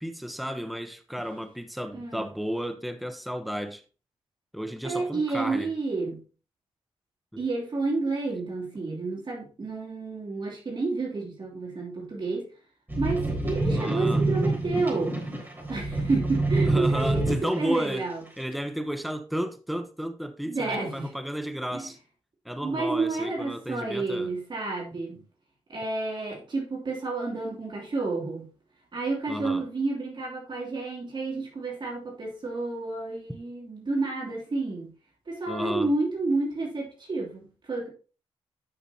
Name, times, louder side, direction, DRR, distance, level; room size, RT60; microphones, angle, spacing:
voice 1, 0.0-3.8 4.5-5.7 13.7-14.2 16.6-18.1 18.4-22.0 22.4-24.3 29.3-29.7 35.5-35.9, equal, ahead, 0.9 m, -32 dB
voice 2, 1.9-2.3 4.8-6.2 7.4-12.4 13.0-15.2 15.7-18.2 20.5-21.1 21.7-21.9 22.6-25.2 25.7-28.4 28.9-34.9 35.3-37.9, right 3 dB, 45° right, 3.0 m, -30 dB
sound 1, 12.9-17.8 18.4-18.5, right 2 dB, 20° right, 3.7 m, -27 dB
10.5 x 6.0 x 2.8 m
cardioid pair, 75°, 11 cm